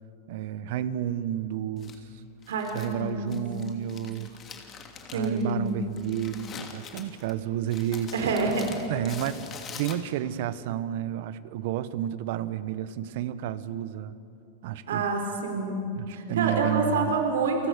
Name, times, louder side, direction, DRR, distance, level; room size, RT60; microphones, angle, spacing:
voice 1, 0.3-2.0 2.7-4.3 5.1-8.5 8.9-9.4 9.7-14.2 14.6-15.1 15.9-17.1, right 11 dB, 65° right, 15 dB, 1.1 m, -31 dB
Crumpling crinkling, 1.8-10.4, left 6 dB, 30° left, 2.8 m, -45 dB
voice 2, 2.5-3.5 5.1-5.8 8.1-8.8 14.9-17.7, right 3 dB, 85° right, 4 dB, 4.2 m, -28 dB
30.0 x 23.0 x 6.7 m, 2.7 s
supercardioid pair, 135°, 0 cm